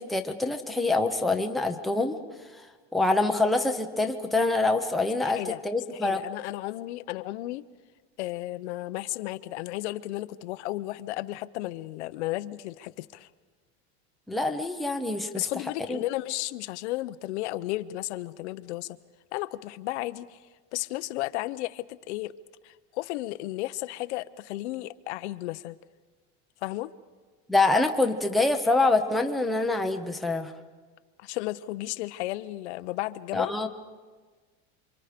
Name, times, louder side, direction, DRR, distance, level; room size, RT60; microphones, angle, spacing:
voice 1, 0.0-2.2 2.6-2.7 2.9-6.2 14.3-15.5 15.9-16.0 27.5-30.5 33.3-33.7, left 2 dB, ahead, 3 dB, 0.8 m, -25 dB
voice 2, 5.2-5.6 5.9-7.6 8.2-13.3 15.3-19.0 19.3-20.4 20.7-22.3 22.6-25.8 26.6-26.9 31.2-33.5, left 17 dB, 85° left, 13 dB, 0.8 m, -34 dB
28.0 x 24.5 x 5.1 m, 1.4 s
supercardioid pair, 165°, 33 cm